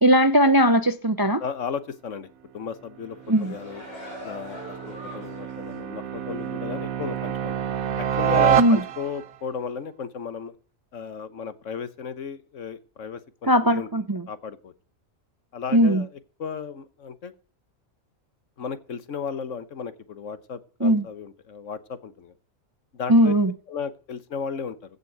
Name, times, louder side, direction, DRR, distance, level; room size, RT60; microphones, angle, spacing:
voice 1, 0.0-1.4 3.3-3.5 8.6-8.8 13.5-14.2 15.7-16.0 20.8-21.1 23.1-23.5, equal, 25° right, 0.5 m, -19 dB
voice 2, 1.4-2.3 2.5-3.8 4.2-4.6 4.9-7.6 8.0-10.5 10.9-13.9 14.3-14.7 15.5-16.1 16.4-17.3 18.6-22.3 22.9-23.3 23.7-24.8, left 6 dB, 65° left, 1.4 m, -34 dB
sound 1, 2.9-9.4, right 9 dB, 90° right, 1.3 m, -27 dB
sound 2, 3.0-5.7 6.1-6.3, equal, 30° left, 6.3 m, -42 dB
15.5 x 5.4 x 7.8 m
omnidirectional pair, 1.4 m